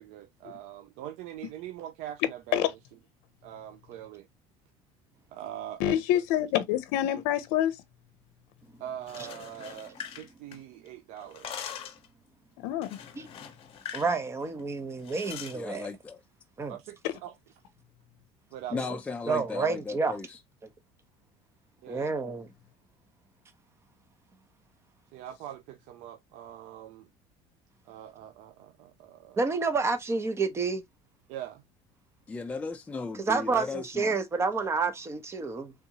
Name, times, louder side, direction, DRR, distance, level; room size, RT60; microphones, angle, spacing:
voice 1, 0.0-2.8 3.4-4.3 5.3-6.2 8.8-11.8 16.7-17.3 18.5-18.9 21.8-22.1 25.1-27.1 27.9-29.4 31.3-31.6, right 11 dB, 65° right, 0.5 m, -43 dB
voice 2, 5.8-7.8 12.6-13.0, left 12 dB, 80° left, 0.6 m, -26 dB
sound 1, 9.0-10.9 11.2-12.1 12.8-14.1 14.4-14.6 15.0-15.6, left 8 dB, 45° left, 0.8 m, -42 dB
voice 3, 13.9-15.9 16.6-16.7 19.3-20.2 21.9-22.5 29.4-30.8 33.3-35.7, right 4 dB, 20° right, 0.7 m, -29 dB
voice 4, 15.5-16.2 18.7-20.4 32.3-34.2, left 4 dB, 10° left, 0.4 m, -36 dB
3.5 x 2.6 x 2.8 m
cardioid pair, 130°, 13 cm